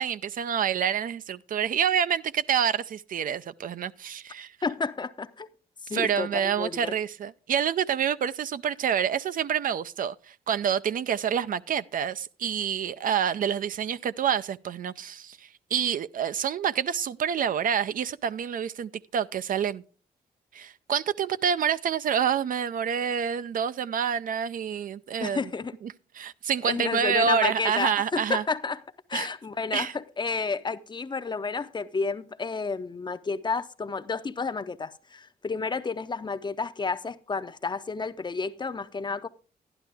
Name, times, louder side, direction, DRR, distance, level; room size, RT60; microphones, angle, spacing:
voice 1, 0.0-4.5 5.9-19.8 20.5-25.4 25.8-28.4 29.1-29.3 29.7-29.9, right 8 dB, 60° right, 0.4 m, -27 dB
voice 2, 4.6-5.5 5.8-7.0 25.2-25.7 26.6-28.8 29.1-39.3, left 4 dB, 30° left, 0.6 m, -31 dB
11.5 x 11.0 x 3.4 m
cardioid pair, 95°, 16 cm